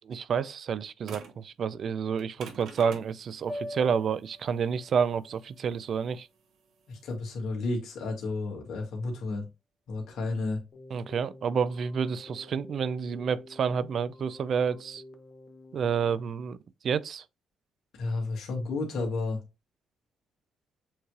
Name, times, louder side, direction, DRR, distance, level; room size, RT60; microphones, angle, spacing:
voice 1, 0.1-6.3 10.9-15.0 15.7-16.6 16.8-17.2, right 6 dB, 55° right, 0.4 m, -29 dB
sound 1, 1.0-1.5 2.1-7.1, right 6 dB, 75° right, 1.0 m, -47 dB
sound 2, 3.5-7.8, equal, 10° right, 0.9 m, -45 dB
voice 2, 6.9-9.5 9.9-10.6 18.0-19.4, left 3 dB, 75° left, 1.8 m, -32 dB
Keyboard (musical), 10.7-16.1, left 2 dB, 35° left, 0.8 m, -50 dB
7.1 x 3.2 x 2.3 m
cardioid pair, 90°, 0 cm